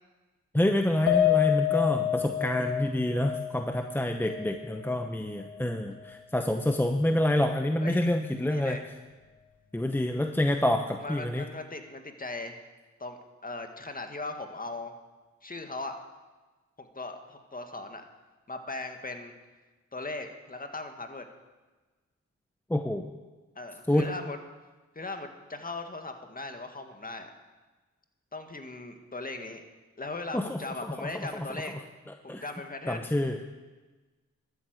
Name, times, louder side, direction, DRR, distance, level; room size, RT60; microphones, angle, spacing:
voice 1, 0.5-8.8 9.7-11.4 22.7-23.1 23.9-24.1 30.3-30.6 31.0-31.1 32.3-32.4 32.9-33.4, left 1 dB, 5° left, 5 dB, 0.9 m, -27 dB
Piano, 1.1-5.5 5.9-6.1 6.5-6.6, left 12 dB, 80° left, 2.1 m, -28 dB
voice 2, 8.5-8.8 11.0-12.7 13.0-14.9 15.4-16.0 16.8-18.0 18.5-19.3 19.9-21.2 23.6-24.4 25.0-27.3 28.3-29.6 30.0-31.7 32.2-33.1, left 2 dB, 30° left, 5 dB, 1.9 m, -38 dB
12.5 x 8.8 x 8.2 m, 1.2 s
cardioid pair, 65°, 30 cm